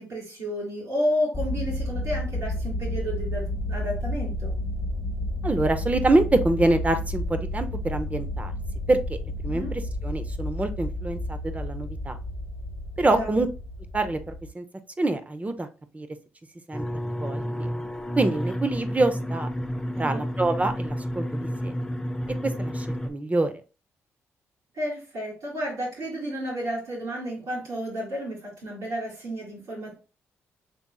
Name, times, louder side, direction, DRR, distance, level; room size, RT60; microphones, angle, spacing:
voice 1, 0.0-4.5 9.5-9.7 13.1-13.3 19.9-20.3 24.7-29.9, equal, 75° right, -6 dB, 2.5 m, -31 dB
sound 1, 1.3-14.5, left 1 dB, 35° left, 1.2 m, -31 dB
voice 2, 5.4-8.5 8.9-9.2 9.4-12.2 13.0-13.5 13.9-14.6 15.0-15.7 15.9-16.1 16.7-16.8 17.2-17.7 18.2-19.5 20.0-21.7 22.4-23.5, right 2 dB, 25° right, 8 dB, 0.8 m, -25 dB
sound 2, 16.7-23.1, equal, 10° left, 0.7 m, -30 dB
5.3 x 3.5 x 2.3 m, 0.33 s
supercardioid pair, 55°, 6 cm